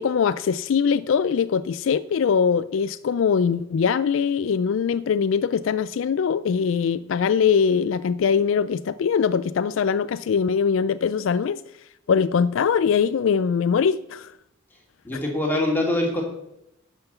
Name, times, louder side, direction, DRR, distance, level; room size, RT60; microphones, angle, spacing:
voice 1, 0.0-11.6 12.1-14.3, left 6 dB, 70° left, 15 dB, 0.3 m, -22 dB
voice 2, 15.0-16.2, left 1 dB, 10° left, -2 dB, 2.6 m, -23 dB
11.5 x 5.8 x 6.8 m, 0.81 s
head